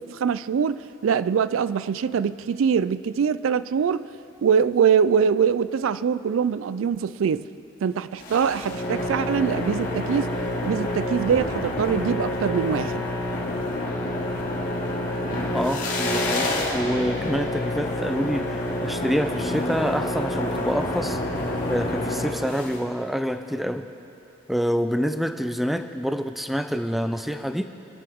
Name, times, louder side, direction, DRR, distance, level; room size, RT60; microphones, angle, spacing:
voice 1, 0.0-4.1 4.4-7.4 7.8-10.3 10.6-13.1, right 7 dB, 90° right, 16 dB, 0.4 m, -23 dB
sound 1, 8.2-22.8, left 1 dB, 45° left, 2.2 m, -28 dB
voice 2, 15.5-21.2 21.7-23.9 24.5-27.6, equal, ahead, 8 dB, 0.4 m, -27 dB
25.0 x 10.5 x 3.5 m, 2.9 s
head